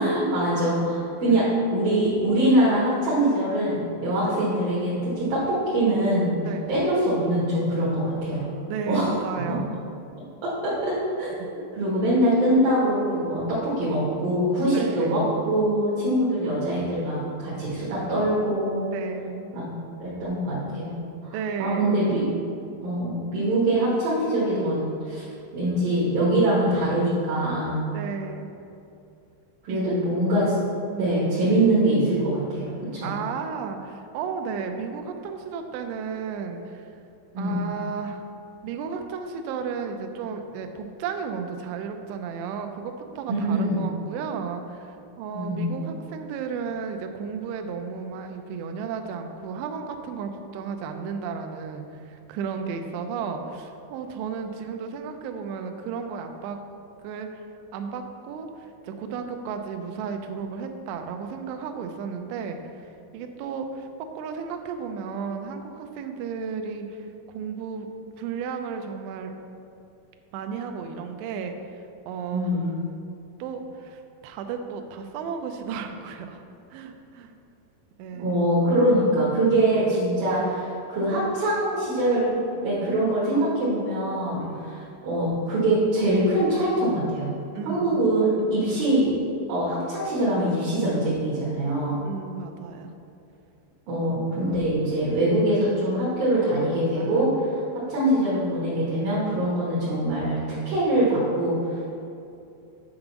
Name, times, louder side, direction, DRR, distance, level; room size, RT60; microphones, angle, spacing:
voice 1, 0.0-6.3 6.7-8.4 8.9-9.2 10.4-18.9 19.5-19.6 20.0-21.3 21.6-22.2 22.8-24.8 25.0-25.2 25.5-27.9 29.6-30.5 31.0-33.1 37.3-37.6 43.3-43.8 45.3-45.7 72.3-72.7 78.2-82.3 82.6-87.3 87.6-89.1 89.5-92.0 93.9-97.3 97.9-100.4 100.7-101.8, right 1 dB, 60° right, -9 dB, 2.8 m, -23 dB
voice 2, 8.7-9.7 14.7-15.2 18.9-19.6 21.3-22.1 27.9-28.5 29.7-29.9 30.9-31.2 33.0-36.9 37.4-38.3 38.6-56.6 57.0-57.5 57.7-67.9 68.2-69.3 70.3-72.5 73.4-76.4 76.7-77.3 78.0-78.4 80.2-80.7 84.4-84.8 87.5-88.2 88.5-88.7 92.0-92.9 94.5-94.6 97.0-97.3, right 6 dB, 80° right, 5 dB, 2.6 m, -34 dB
8.7 x 3.8 x 5.9 m, 2.7 s
omnidirectional pair, 5.2 m